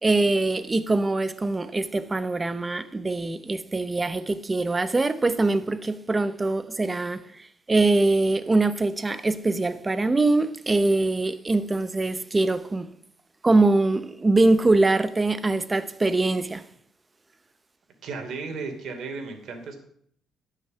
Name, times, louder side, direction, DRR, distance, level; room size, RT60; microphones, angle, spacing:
voice 1, 0.0-12.9 13.4-16.6, right 2 dB, 20° right, 0.7 m, -23 dB
voice 2, 18.0-19.8, right 4 dB, 65° right, 2.6 m, -34 dB
11.0 x 6.6 x 7.4 m
cardioid pair, 125°, 0 cm